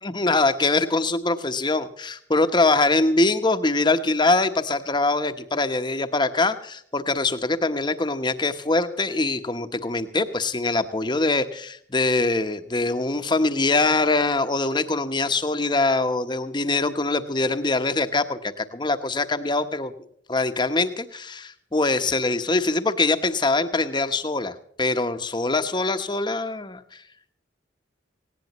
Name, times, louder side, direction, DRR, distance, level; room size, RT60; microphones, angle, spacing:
voice 1, 0.0-19.9 20.3-26.8, left 3 dB, 25° left, 9 dB, 1.0 m, -23 dB
19.0 x 17.0 x 3.1 m, 0.66 s
head